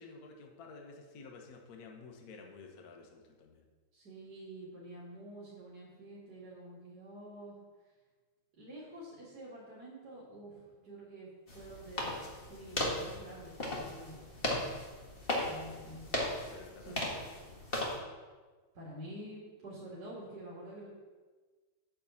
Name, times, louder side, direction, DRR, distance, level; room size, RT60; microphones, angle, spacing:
voice 1, 0.0-3.6 15.5-15.9 16.5-17.5, left 4 dB, 50° left, 1 dB, 1.5 m, -52 dB
voice 2, 3.9-7.6 8.6-12.1 12.5-14.2 15.3-16.0 16.8-17.0 18.7-20.9, right 1 dB, 50° right, -7 dB, 2.8 m, -48 dB
sound 1, 11.5-18.0, left 1 dB, 30° left, 1.7 m, -37 dB
9.3 x 5.4 x 7.0 m, 1.4 s
omnidirectional pair, 2.2 m